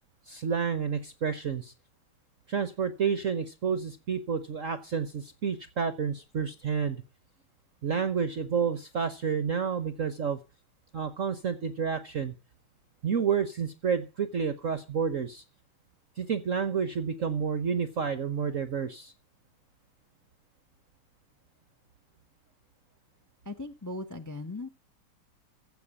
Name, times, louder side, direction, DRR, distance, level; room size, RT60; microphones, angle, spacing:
voice 1, 0.3-1.7 2.5-7.0 7.8-10.4 10.9-12.3 13.0-15.4 16.2-19.1, right 6 dB, 55° right, 11 dB, 0.9 m, -30 dB
voice 2, 23.4-24.7, left 2 dB, 15° left, 10 dB, 0.6 m, -38 dB
15.5 x 5.8 x 8.7 m, 0.32 s
omnidirectional pair, 2.4 m